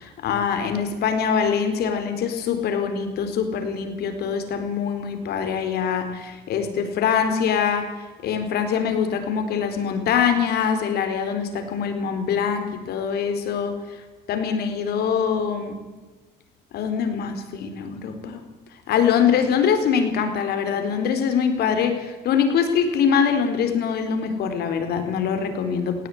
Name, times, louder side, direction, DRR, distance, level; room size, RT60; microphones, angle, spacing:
voice 1, 0.0-7.9 8.2-13.8 14.3-15.8 16.7-18.4 18.9-26.1, left 7 dB, 70° left, 7 dB, 4.4 m, -23 dB
18.5 x 18.5 x 9.5 m, 1.2 s
cardioid pair, 110°, 17 cm